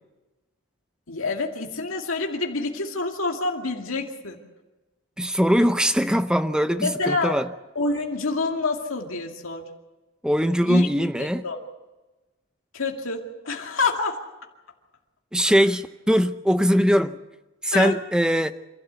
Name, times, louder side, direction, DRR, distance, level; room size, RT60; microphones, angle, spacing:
voice 1, 1.1-4.4 6.8-7.4 7.8-9.6 10.7-10.9 11.2-11.6 12.7-14.2 17.7-18.0, left 3 dB, 85° left, 2.4 m, -27 dB
voice 2, 5.2-7.5 10.2-11.4 15.3-17.2 17.6-18.5, equal, 5° right, 0.6 m, -21 dB
27.0 x 13.0 x 8.3 m
head